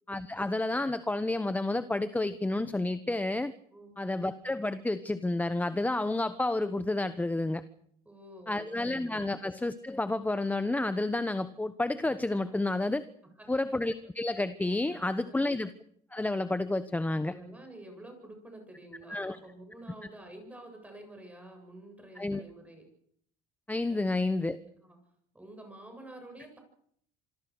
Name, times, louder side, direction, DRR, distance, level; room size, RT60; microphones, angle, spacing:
voice 1, 0.1-3.5 4.0-7.6 8.5-13.0 13.5-15.7 16.1-17.3 19.1-19.4 22.2-22.4 23.7-24.6, left 2 dB, 10° left, 12 dB, 1.2 m, -30 dB
voice 2, 3.7-4.1 8.0-9.4 12.5-12.6 13.4-13.8 14.9-15.4 17.3-22.8 23.9-24.3 24.8-25.0 25.3-26.6, right 1 dB, 10° right, 4 dB, 7.9 m, -50 dB
27.0 x 22.5 x 6.5 m, 0.68 s
cardioid pair, 105°, 16 cm